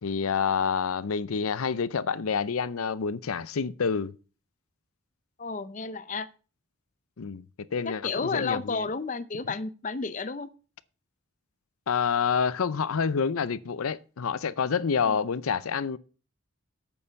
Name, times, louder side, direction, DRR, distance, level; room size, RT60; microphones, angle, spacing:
voice 1, 0.0-4.2 7.2-7.4 7.7-8.9 11.9-16.0, left 6 dB, 85° left, 0.6 m, -28 dB
voice 2, 5.4-6.3 7.8-10.5 15.0-15.2, left 4 dB, 35° left, 0.6 m, -32 dB
8.5 x 6.9 x 6.9 m
head